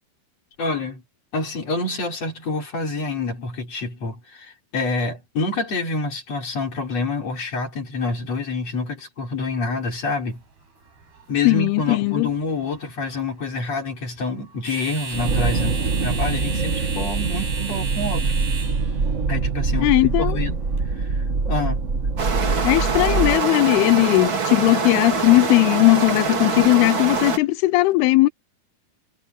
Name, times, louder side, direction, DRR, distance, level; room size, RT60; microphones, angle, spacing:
voice 1, 0.6-1.0 1.3-10.4 11.3-18.3 19.3-21.8, left 3 dB, 40° left, 6.6 m, -27 dB
sound 1, 9.5-20.8, right 4 dB, 90° right, 9.8 m, -37 dB
voice 2, 11.5-12.3 19.8-20.4 22.6-28.3, left 21 dB, 90° left, 2.6 m, -18 dB
sound 2, 15.1-23.4, right 4 dB, 70° right, 0.7 m, -24 dB
sound 3, 22.2-27.4, right 5 dB, 35° right, 3.1 m, -24 dB
omnidirectional pair, 4.4 m